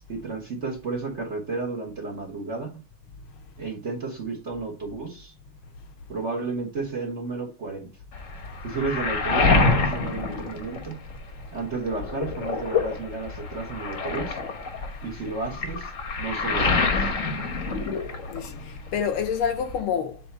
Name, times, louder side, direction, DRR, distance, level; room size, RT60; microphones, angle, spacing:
voice 1, 0.1-2.7 3.6-5.3 6.1-7.9 8.6-11.0 11.5-14.4 15.0-15.9 16.2-17.1, right 3 dB, 40° right, 1.3 m, -32 dB
Waves surf, 8.1-11.3 11.7-18.6 18.9-19.8, left 3 dB, 45° left, 1.2 m, -26 dB
voice 2, 18.0-20.2, left 7 dB, 75° left, 1.7 m, -28 dB
8.0 x 2.9 x 5.4 m
omnidirectional pair, 2.4 m